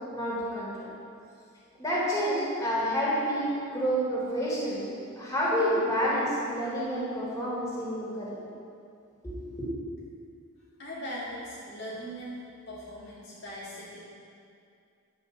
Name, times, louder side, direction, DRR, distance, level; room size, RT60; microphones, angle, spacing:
voice 1, 0.1-0.9 1.8-4.8 5.2-8.4 9.2-9.7, equal, 15° left, -7 dB, 3.5 m, -29 dB
voice 2, 10.8-12.4 12.7-14.0, equal, 55° left, -7 dB, 2.2 m, -39 dB
11.0 x 7.2 x 7.3 m, 2.4 s
head